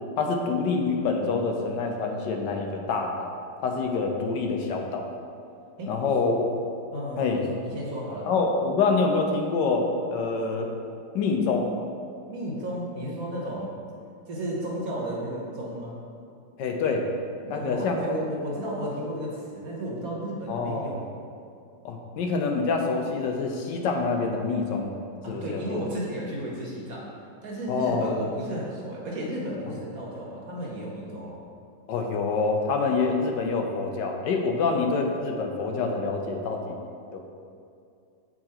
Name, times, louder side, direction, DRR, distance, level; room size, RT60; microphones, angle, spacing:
voice 1, 0.2-3.3 3.6-5.1 5.9-6.5 7.2-7.4 8.3-10.7 11.1-11.7 16.6-17.1 17.5-18.0 20.5-20.9 21.8-25.0 25.3-25.8 27.7-28.2 31.9-36.8 37.1-37.2, left 4 dB, 85° left, 2 dB, 1.3 m, -26 dB
voice 2, 6.9-8.3 12.3-13.8 14.3-16.0 17.4-21.0 25.2-27.0 27.4-31.4, equal, 60° right, -4 dB, 1.6 m, -33 dB
7.1 x 3.8 x 4.3 m, 2.4 s
omnidirectional pair, 1.9 m